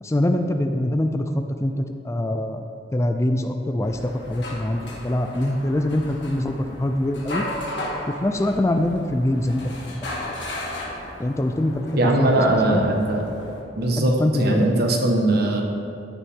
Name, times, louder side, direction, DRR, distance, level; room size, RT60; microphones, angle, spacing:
voice 1, 0.0-2.6 2.9-7.5 8.1-10.1 11.2-12.8 14.0-14.7, left 1 dB, 15° left, 6 dB, 0.4 m, -24 dB
sound 1, 3.8-13.6, left 1 dB, 70° left, 1.8 m, -35 dB
voice 2, 12.0-13.2 13.8-15.6, right 1 dB, 60° right, 1 dB, 1.3 m, -20 dB
14.0 x 7.1 x 3.6 m, 2.4 s
head